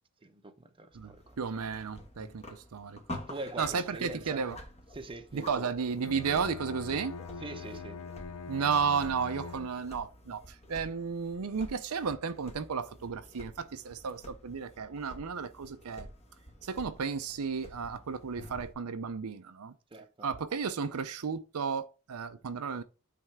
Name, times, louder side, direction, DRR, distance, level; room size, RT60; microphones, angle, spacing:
voice 1, 0.2-1.4 3.3-4.4 4.9-5.7 7.4-8.0 19.9-20.1, right 2 dB, 25° right, 0.8 m, -43 dB
sound 1, 0.9-18.7, left 1 dB, 30° left, 1.4 m, -49 dB
voice 2, 1.4-3.2 3.6-4.6 5.3-7.1 8.5-16.1 16.6-19.7 20.2-22.8, right 5 dB, 70° right, 0.6 m, -33 dB
Bowed string instrument, 6.0-10.1, left 5 dB, 85° left, 0.6 m, -43 dB
8.9 x 3.4 x 4.7 m
head